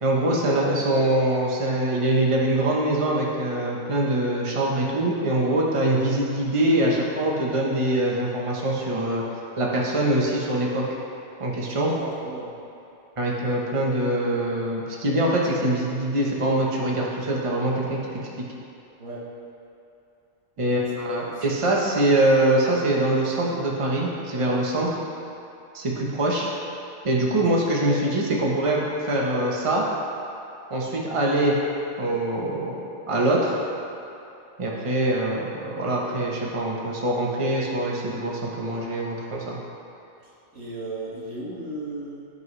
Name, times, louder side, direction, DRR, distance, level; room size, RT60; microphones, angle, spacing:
voice 1, 0.0-9.2 9.6-10.8 11.4-11.9 13.2-18.4 20.6-25.0 25.7-26.5 27.0-29.8 30.7-31.6 32.0-32.7 33.1-33.5 34.6-39.6, right 1 dB, 25° right, -3 dB, 1.1 m, -23 dB
voice 2, 11.8-12.5 19.0-19.3 20.6-20.7 21.2-21.4 27.3-27.4 40.2-42.3, right 2 dB, 85° right, -7 dB, 2.2 m, -36 dB
16.0 x 5.4 x 3.3 m, 2.8 s
omnidirectional pair, 1.3 m